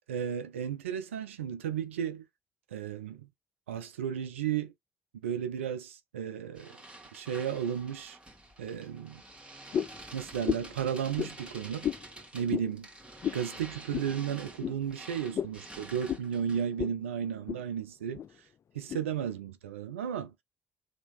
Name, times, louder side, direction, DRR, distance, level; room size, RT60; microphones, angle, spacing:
voice 1, 0.1-2.2 2.7-3.3 3.7-4.7 5.2-6.7 7.1-8.2 8.6-9.2 10.1-11.9 12.3-12.9 13.3-18.2 18.7-20.3, right 8 dB, 85° right, 0.4 m, -34 dB
sound 1, 6.6-16.8, right 1 dB, 15° right, 1.9 m, -48 dB
sound 2, 9.7-10.0 10.4-10.8 11.2-11.3 11.8-12.0 12.5-12.7 13.2-13.4 13.9-14.1 14.6-14.8 15.3-15.6 16.1-16.3 16.8-17.0 17.3-17.6 18.1-18.3 18.9-19.0, left 9 dB, 45° left, 0.4 m, -32 dB
3.6 x 3.4 x 3.4 m
hypercardioid pair, 50°, 7 cm